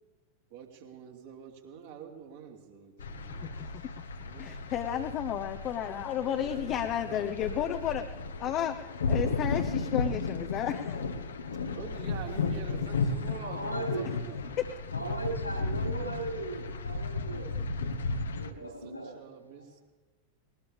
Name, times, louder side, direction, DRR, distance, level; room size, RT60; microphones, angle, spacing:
voice 1, 0.5-3.9 4.2-4.7 6.2-7.6 11.6-14.6 18.1-18.3 18.6-19.8, right 6 dB, 55° right, 0 dB, 3.0 m, -47 dB
sound 1, 3.0-18.5, left 3 dB, 70° left, 1.2 m, -34 dB
voice 2, 3.4-3.8 4.4-11.0, left 10 dB, 35° left, 6 dB, 0.9 m, -33 dB
voice 3, 13.4-14.0 14.9-17.6 18.3-19.1, right 2 dB, 85° left, 1 dB, 4.4 m, -37 dB
20.5 x 20.0 x 3.5 m, 1.3 s
figure-of-eight pair, 90°, 0 cm